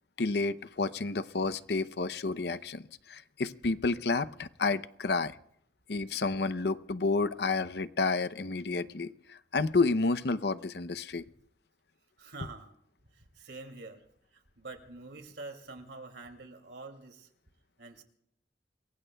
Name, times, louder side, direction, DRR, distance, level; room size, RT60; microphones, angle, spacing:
voice 1, 0.2-5.4 5.9-11.2, left 3 dB, 65° left, 15 dB, 0.6 m, -30 dB
voice 2, 12.2-12.7 13.1-14.0 14.3-17.3 17.8-18.0, right 3 dB, 75° right, 5 dB, 2.6 m, -46 dB
27.5 x 22.5 x 2.3 m, 0.71 s
head